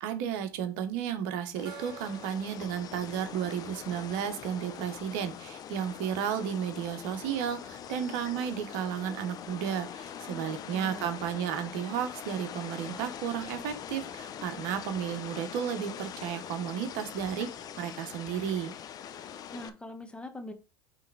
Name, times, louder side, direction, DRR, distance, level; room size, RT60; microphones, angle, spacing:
voice 1, 0.0-17.5 17.8-18.7, right 8 dB, 65° right, 1.1 m, -33 dB
sound 1, 1.6-19.7, left 9 dB, 40° left, 0.8 m, -43 dB
Gong, 1.7-4.9, right 7 dB, 45° right, 3.0 m, -51 dB
voice 2, 10.2-11.1 19.5-20.5, left 1 dB, 10° left, 1.2 m, -43 dB
8.7 x 3.4 x 4.0 m
supercardioid pair, 100°, 10 cm